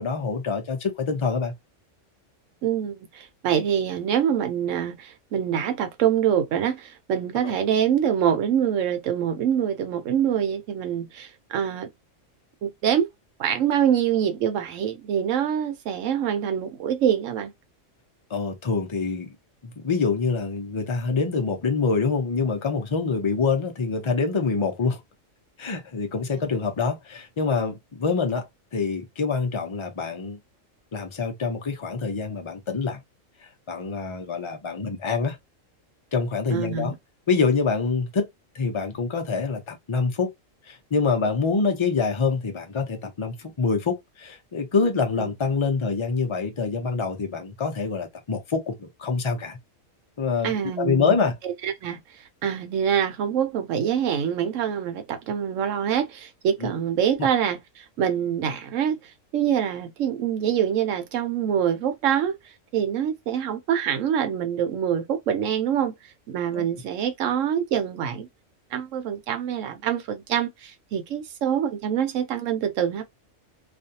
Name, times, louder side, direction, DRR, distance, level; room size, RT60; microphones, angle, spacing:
voice 1, 0.0-1.5 7.4-7.5 18.3-19.3 19.6-25.0 25.6-30.4 30.9-33.0 33.7-35.4 36.1-36.9 37.3-38.3 38.5-40.3 40.7-49.6 50.2-51.3 56.6-56.7 57.2-57.3 66.5-66.7, left 4 dB, 35° left, 0.4 m, -26 dB
voice 2, 2.6-11.9 12.6-13.1 13.4-17.5 26.3-26.4 36.5-37.0 45.2-45.3 50.4-52.0 52.4-59.0 59.3-62.4 62.7-65.9 66.3-68.3 68.7-73.0, right 9 dB, 75° right, 1.0 m, -25 dB
2.5 x 2.3 x 2.7 m
omnidirectional pair, 1.3 m